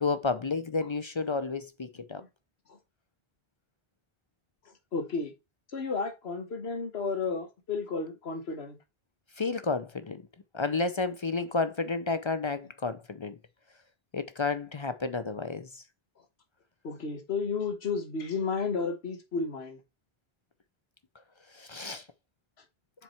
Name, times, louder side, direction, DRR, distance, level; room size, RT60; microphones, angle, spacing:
voice 1, 0.0-2.2 9.4-10.2 10.5-13.4 14.1-15.7 21.6-22.0, left 4 dB, 40° left, 0.4 m, -31 dB
voice 2, 4.9-5.3 5.7-8.8 16.8-19.8, left 4 dB, 85° left, 1.4 m, -32 dB
7.0 x 4.6 x 4.3 m
omnidirectional pair, 1.0 m